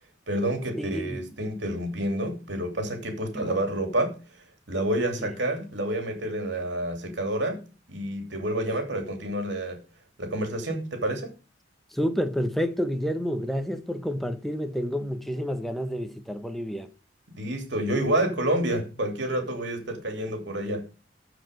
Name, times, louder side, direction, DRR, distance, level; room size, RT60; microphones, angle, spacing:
voice 1, 0.3-4.2 4.7-7.6 7.9-9.8 10.2-11.3 17.3-20.9, right 1 dB, 65° right, 2.9 m, -28 dB
voice 2, 0.8-1.2 3.3-3.5 5.2-5.3 11.9-16.9, equal, ahead, 1.0 m, -29 dB
14.0 x 5.0 x 5.3 m
head